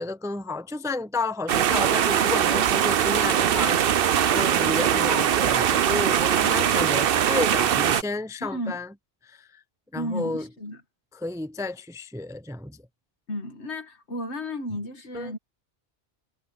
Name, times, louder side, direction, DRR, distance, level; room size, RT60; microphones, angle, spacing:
voice 1, 0.0-8.9 9.3-9.5 9.9-10.5 11.1-12.8 15.1-15.3, left 2 dB, 5° right, 0.4 m, -31 dB
sound 1, 1.5-8.0, right 9 dB, 60° right, 0.8 m, -21 dB
voice 2, 8.4-8.8 9.9-10.8 13.3-15.4, left 1 dB, 90° left, 2.2 m, -33 dB
omnidirectional pair, 1.1 m